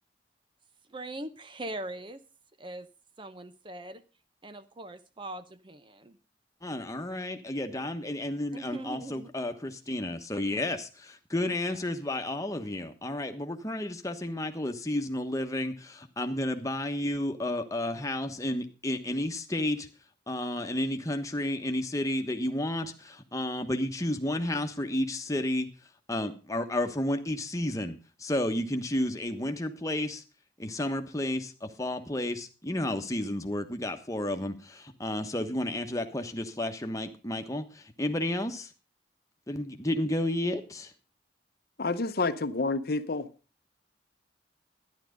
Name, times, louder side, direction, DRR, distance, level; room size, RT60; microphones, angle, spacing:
voice 1, 0.9-2.2 2.6-2.9 3.2-4.0 4.4-6.2 8.5-9.3, right 1 dB, 25° right, 0.7 m, -41 dB
voice 2, 6.6-19.9 20.3-25.7 26.1-30.2 30.6-38.7 39.5-40.9, left 1 dB, 20° left, 1.2 m, -32 dB
voice 3, 41.8-43.3, left 3 dB, 55° left, 0.8 m, -29 dB
12.0 x 10.5 x 5.1 m
head